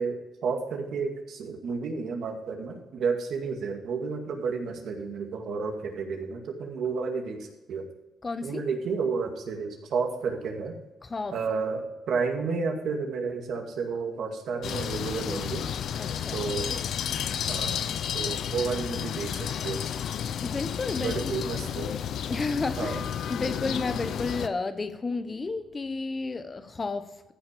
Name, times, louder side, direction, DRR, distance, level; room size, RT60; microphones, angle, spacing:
voice 1, 0.0-7.9 8.4-10.8 11.3-15.7 16.3-16.8 17.5-17.7 18.1-19.8 21.0-22.0 22.8-23.0, right 5 dB, 70° right, 2.1 m, -31 dB
voice 2, 8.2-8.6 11.1-11.4 16.0-16.5 20.4-21.3 22.3-23.0 23.3-27.3, left 3 dB, 30° left, 1.1 m, -32 dB
sound 1, 14.6-24.5, left 8 dB, 70° left, 0.6 m, -32 dB
14.5 x 5.7 x 5.3 m
cardioid pair, 90°, 0 cm